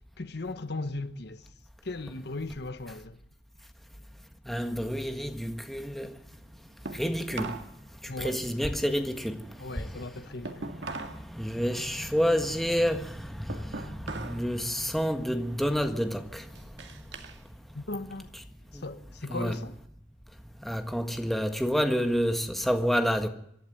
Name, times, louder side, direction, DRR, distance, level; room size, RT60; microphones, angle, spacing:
voice 1, 0.2-1.5 1.8-3.2 8.1-8.4 9.6-10.7 17.7-18.3 18.7-19.7, left 2 dB, 65° left, 1.2 m, -37 dB
voice 2, 4.5-6.1 6.9-7.5 8.2-9.4 9.8-9.9 11.3-16.4 19.3-19.5 20.6-23.3, equal, ahead, 1.6 m, -29 dB
sound 1, 4.7-7.7 8.0-11.3 11.6-14.5 14.8-15.2 15.8-17.4 17.8-18.9, right 3 dB, 75° right, 2.2 m, -42 dB
26.0 x 12.0 x 9.2 m
head